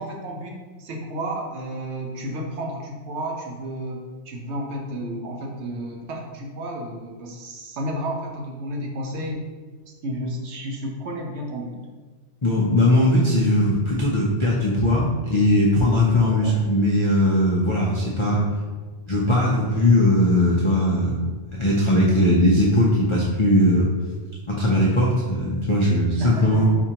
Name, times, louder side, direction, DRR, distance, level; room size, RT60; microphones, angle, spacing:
voice 1, 0.0-4.0 4.3-9.4 10.0-11.8 16.3-16.6 26.2-26.8, right 1 dB, 75° right, 1 dB, 0.9 m, -32 dB
voice 2, 12.4-18.5 19.1-21.2 21.5-23.9 24.5-26.7, left 1 dB, 50° left, -6 dB, 0.3 m, -19 dB
4.4 x 2.4 x 2.8 m, 1.4 s
omnidirectional pair, 1.2 m